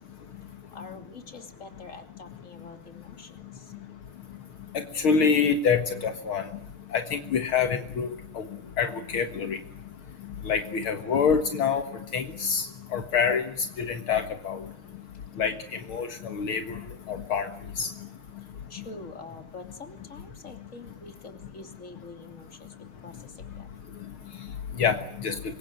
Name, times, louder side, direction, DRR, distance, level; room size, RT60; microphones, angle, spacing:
voice 1, 0.7-3.7 18.7-23.7, left 3 dB, 35° left, 6 dB, 3.3 m, -45 dB
voice 2, 5.0-6.4 6.9-8.1 8.4-8.5 8.8-9.6 10.5-11.8 12.1-12.7 12.9-13.4 13.8-14.6 15.4-15.5 15.9-16.8 17.1-17.5 17.8-17.9 24.8-25.3, left 6 dB, 70° left, 7 dB, 2.4 m, -26 dB
26.0 x 23.0 x 9.3 m, 0.67 s
omnidirectional pair, 2.4 m